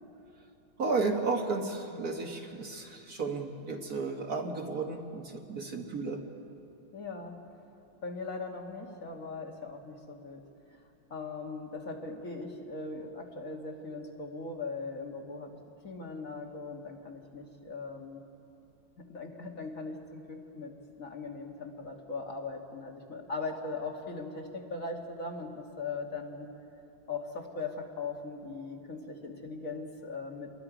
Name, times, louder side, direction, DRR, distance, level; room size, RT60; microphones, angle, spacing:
voice 1, 0.8-6.2, right 3 dB, 50° right, 3 dB, 1.7 m, -33 dB
voice 2, 6.9-7.4 8.0-10.4 11.1-15.6 15.8-18.2 19.1-20.7 21.0-26.5 27.1-30.5, left 3 dB, 45° left, 1 dB, 1.9 m, -39 dB
29.0 x 21.5 x 5.0 m, 2.7 s
omnidirectional pair, 2.2 m